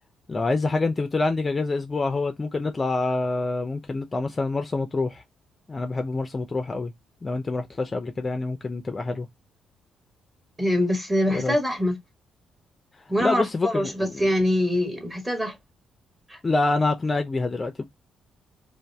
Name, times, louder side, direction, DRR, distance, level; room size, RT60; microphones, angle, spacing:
voice 1, 0.3-5.2 5.7-6.9 7.2-9.3 11.3-11.6 13.2-14.2 16.4-17.8, left 3 dB, 25° left, 0.5 m, -26 dB
voice 2, 10.6-11.9 13.1-15.5 16.3-16.4, equal, 15° right, 1.4 m, -24 dB
2.6 x 2.5 x 3.3 m
cardioid pair, 90°, 0 cm